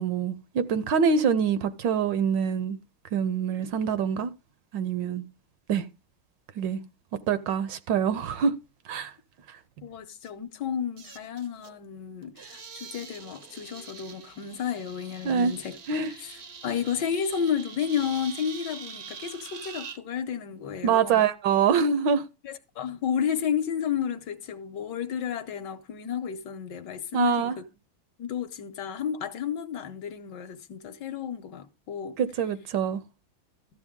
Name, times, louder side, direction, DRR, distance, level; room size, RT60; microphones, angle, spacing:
voice 1, 0.0-2.8 3.1-4.3 4.7-5.2 5.7-5.9 6.6-6.8 7.3-8.6 8.8-9.1 9.5-9.6 15.2-15.5 15.9-16.1 20.8-22.3 27.1-27.6 32.2-33.0, right 6 dB, 70° right, 1.3 m, -25 dB
voice 2, 9.8-15.8 16.2-16.4 16.6-21.3 22.4-27.6 28.2-32.2, left 8 dB, 65° left, 1.3 m, -32 dB
sound 1, 10.2-10.3 11.0-11.8 12.2-20.0, right 6 dB, 55° right, 0.7 m, -44 dB
13.5 x 7.6 x 3.6 m
omnidirectional pair, 2.2 m